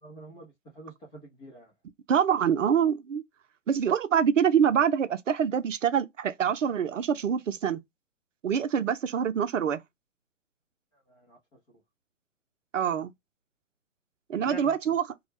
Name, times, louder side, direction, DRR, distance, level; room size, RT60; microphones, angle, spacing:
voice 1, 0.0-1.7 10.9-11.6 14.4-14.7, right 2 dB, 10° left, 0.4 m, -46 dB
voice 2, 2.1-3.2 3.7-7.8 8.4-9.8 12.7-13.1 14.3-15.0, right 8 dB, 75° right, 0.6 m, -25 dB
2.2 x 2.0 x 3.1 m
figure-of-eight pair, 130°, 38 cm